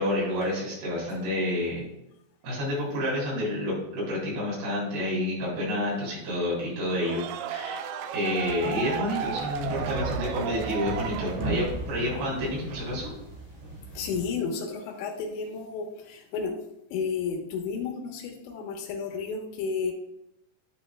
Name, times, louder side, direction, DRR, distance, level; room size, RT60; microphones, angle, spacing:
voice 1, 0.0-1.8 2.4-7.2 7.5-7.9 8.1-13.1, left 1 dB, 65° right, -7 dB, 5.7 m, -29 dB
sound 1, 6.8-11.9, right 8 dB, 85° right, 2.2 m, -34 dB
sound 2, 8.4-14.2, right 2 dB, 40° right, 3.2 m, -37 dB
voice 2, 14.0-16.6 16.9-19.9, left 5 dB, 80° left, 0 dB, 3.6 m, -32 dB
10.5 x 9.8 x 2.3 m, 0.83 s
omnidirectional pair, 5.1 m